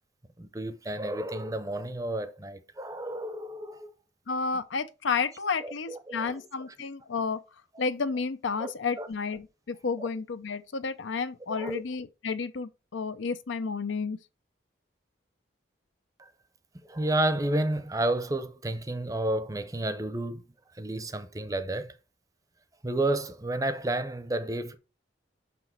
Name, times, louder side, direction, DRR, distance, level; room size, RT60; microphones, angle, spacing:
voice 1, 0.4-3.9 5.6-6.4 8.6-8.7 9.0-9.1 10.0-10.1 11.5-11.8 16.2-16.3 16.9-20.4 20.7-22.0 22.8-24.7, right 1 dB, 20° right, 0.6 m, -31 dB
voice 2, 4.3-7.4 7.8-14.2, left 5 dB, 80° left, 0.6 m, -31 dB
6.1 x 5.8 x 4.5 m
head